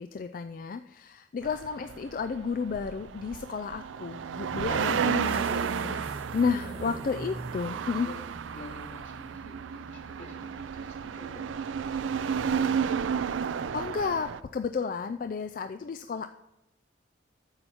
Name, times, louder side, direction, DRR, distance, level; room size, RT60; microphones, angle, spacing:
voice 1, 0.0-8.1 13.7-16.3, left 5 dB, 45° left, 8 dB, 0.3 m, -32 dB
sound 1, 1.4-14.4, right 7 dB, 80° right, 0.4 m, -32 dB
sound 2, 5.2-9.5, right 1 dB, 30° right, 1.3 m, -43 dB
voice 2, 7.9-12.9, left 1 dB, 70° left, -3 dB, 3.3 m, -49 dB
9.6 x 7.0 x 4.4 m, 0.90 s
head